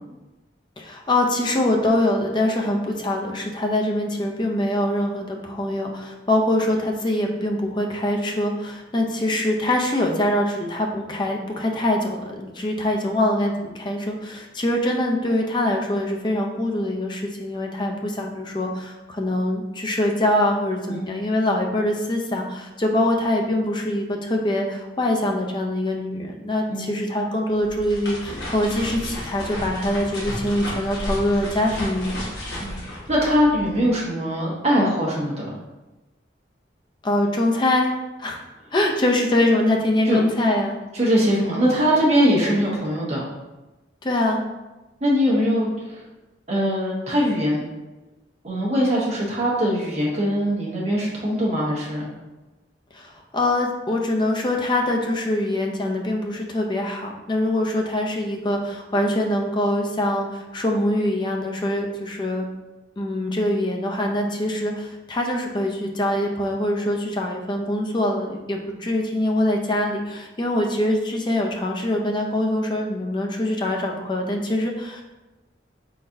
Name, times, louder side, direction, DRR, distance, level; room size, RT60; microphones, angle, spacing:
voice 1, 0.8-32.3 37.0-37.9 38.2-38.4 38.7-40.8 44.0-44.4 52.9-62.4 63.0-75.0, left 1 dB, 25° left, 1 dB, 0.5 m, -23 dB
sound 1, 27.6-33.9, equal, 70° left, 1.3 m, -33 dB
voice 2, 33.1-35.5 40.1-40.2 40.9-43.2 45.0-46.0 46.5-47.6 48.4-52.1, equal, 35° right, -5 dB, 1.1 m, -21 dB
4.2 x 3.9 x 2.6 m, 1.1 s
head